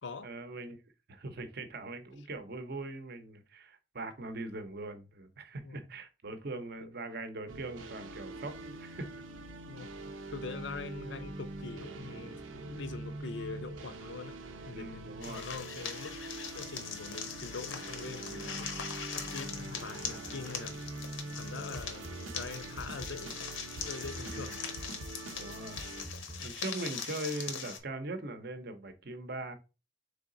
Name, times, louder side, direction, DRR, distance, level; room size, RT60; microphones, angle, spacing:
voice 1, 0.2-0.8 1.1-9.1 14.7-15.5 21.3-21.7 24.3-24.6 25.4-25.8 26.4-29.5, right 2 dB, 55° right, 0.7 m, -41 dB
sound 1, 7.5-26.1, right 2 dB, 90° right, 0.6 m, -44 dB
voice 2, 10.3-16.1 16.5-18.7 19.1-20.8 21.4-23.4 23.8-24.6, left 4 dB, 65° left, 0.5 m, -43 dB
sound 2, 15.2-27.8, left 6 dB, 85° left, 0.9 m, -42 dB
sound 3, 20.0-20.5 21.9-22.6 24.0-24.6 25.9-26.6, right 1 dB, 5° right, 0.6 m, -46 dB
3.8 x 3.4 x 3.8 m
head